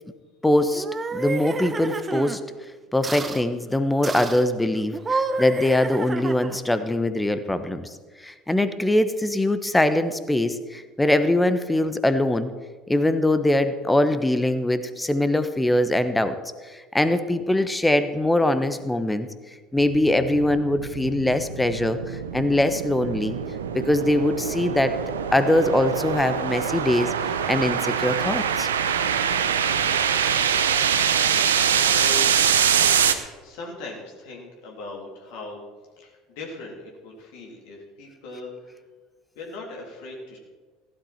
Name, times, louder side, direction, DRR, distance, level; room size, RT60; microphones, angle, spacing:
voice 1, 0.4-0.8 1.1-2.4 2.9-7.9 8.2-12.5 12.9-16.4 16.9-19.3 19.7-22.0 22.3-23.4 23.7-25.0 25.3-27.1 27.5-28.7, left 1 dB, 10° left, 11 dB, 1.1 m, -22 dB
sound 1, 0.7-2.4 3.0-3.4 4.0-4.5 4.9-6.7, right 3 dB, 25° right, 1.1 m, -29 dB
sound 2, 19.8-33.1, right 8 dB, 85° right, 0.8 m, -24 dB
voice 2, 30.9-32.3 33.4-35.6 36.0-38.8 39.3-40.4, left 3 dB, 70° left, -1 dB, 3.3 m, -39 dB
15.5 x 12.5 x 4.4 m, 1.4 s
hypercardioid pair, 70°, 0 cm